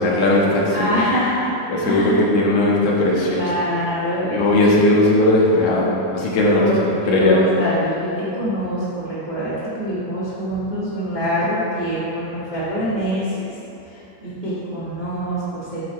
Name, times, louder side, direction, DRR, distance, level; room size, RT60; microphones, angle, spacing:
voice 1, 0.0-1.0 1.7-3.5 4.3-7.5, left 1 dB, 75° left, -4 dB, 2.4 m, -18 dB
voice 2, 0.7-1.5 1.8-2.2 3.2-5.1 6.6-8.1 8.4-13.5 13.8-13.9 14.2-15.8, equal, 60° right, -10 dB, 0.4 m, -24 dB
8.8 x 4.1 x 4.6 m, 2.9 s
omnidirectional pair, 3.5 m